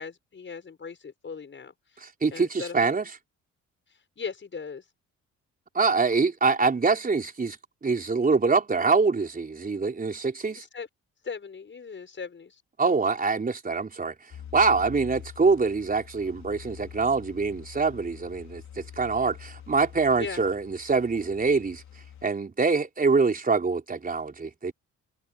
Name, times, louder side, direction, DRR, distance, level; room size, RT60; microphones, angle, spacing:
voice 1, 0.0-2.0 2.3-3.0 3.9-4.8 10.5-10.9 11.2-12.6 20.2-20.4, left 5 dB, 40° left, 6.8 m, -38 dB
voice 2, 2.0-3.1 5.7-7.6 7.8-10.6 12.8-14.1 14.5-21.8 22.2-24.7, right 4 dB, 30° right, 4.2 m, -24 dB
sound 1, 14.3-22.3, left 9 dB, 65° left, 3.7 m, -46 dB
cardioid pair, 90°, 30 cm